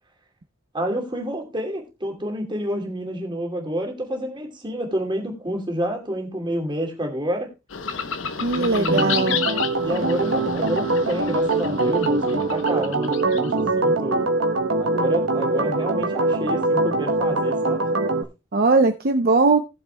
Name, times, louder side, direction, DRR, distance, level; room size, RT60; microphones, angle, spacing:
voice 1, 0.7-7.5 8.5-9.4 9.8-14.3 14.8-17.9, equal, 25° right, 0 dB, 2.7 m, -28 dB
sound 1, 7.7-13.6, left 7 dB, 80° left, 0.9 m, -31 dB
voice 2, 8.4-9.4 18.5-19.6, right 3 dB, 50° right, 6 dB, 0.7 m, -19 dB
Organ, 8.9-18.2, right 2 dB, 80° right, 1.2 m, -23 dB
19.0 x 7.2 x 2.3 m, 0.27 s
head